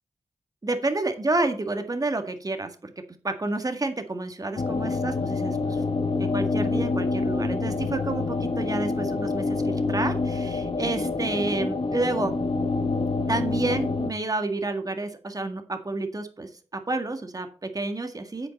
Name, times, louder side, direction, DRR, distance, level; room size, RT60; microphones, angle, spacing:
voice 1, 0.6-2.9 3.2-12.4 13.3-18.5, right 2 dB, 30° right, 6 dB, 1.8 m, -30 dB
sound 1, 4.6-14.1, left 3 dB, 50° left, 1.1 m, -27 dB
8.6 x 8.4 x 4.2 m, 0.36 s
wide cardioid pair, 85°, 12 cm